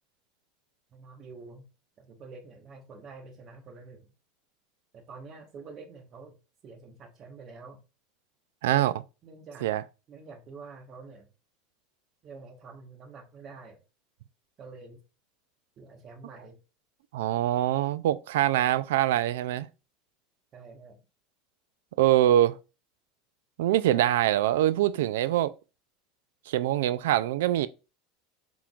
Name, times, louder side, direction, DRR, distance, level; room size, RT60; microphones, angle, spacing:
voice 1, 0.9-1.7 2.0-4.0 4.9-6.4 6.6-7.8 9.2-9.7 10.1-11.3 12.2-13.8 14.6-15.0 15.8-16.6 20.5-21.0, right 4 dB, 40° right, 1.3 m, -47 dB
voice 2, 8.6-9.0 9.6-9.8 17.1-19.7 22.0-22.6 23.6-25.5 26.5-27.7, right 13 dB, 85° right, 0.3 m, -24 dB
5.9 x 3.7 x 2.4 m
supercardioid pair, 120°, 0 cm